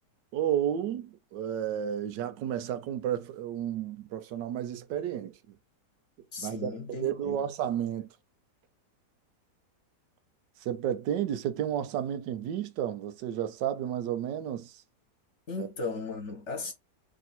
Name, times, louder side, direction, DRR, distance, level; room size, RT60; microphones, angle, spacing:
voice 1, 0.3-5.4 6.4-6.7 7.0-8.1 10.6-14.8 15.6-15.7, right 10 dB, 90° right, 1.3 m, -32 dB
voice 2, 6.3-7.4 15.5-16.7, left 3 dB, 45° left, 1.3 m, -36 dB
3.5 x 2.6 x 4.2 m
omnidirectional pair, 1.8 m